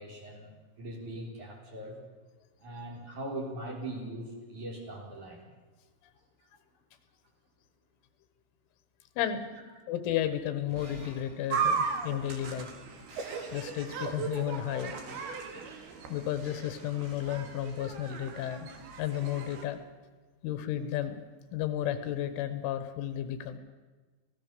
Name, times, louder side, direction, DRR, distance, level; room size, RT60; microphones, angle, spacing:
voice 1, 0.0-2.0 2.6-5.4 6.4-6.5 9.5-9.6, right 1 dB, 40° right, 0 dB, 4.6 m, -41 dB
voice 2, 9.2-9.5 9.9-12.7 13.5-15.0 16.1-18.7 19.0-19.8 20.4-21.2 21.5-23.6, left 11 dB, 75° left, 11 dB, 3.5 m, -33 dB
Shatter, 10.6-18.6, right 1 dB, 80° right, 9.2 m, -54 dB
sound 1, 11.5-19.6, right 5 dB, 60° right, 3.6 m, -36 dB
26.5 x 17.0 x 6.8 m, 1.3 s
omnidirectional pair, 5.8 m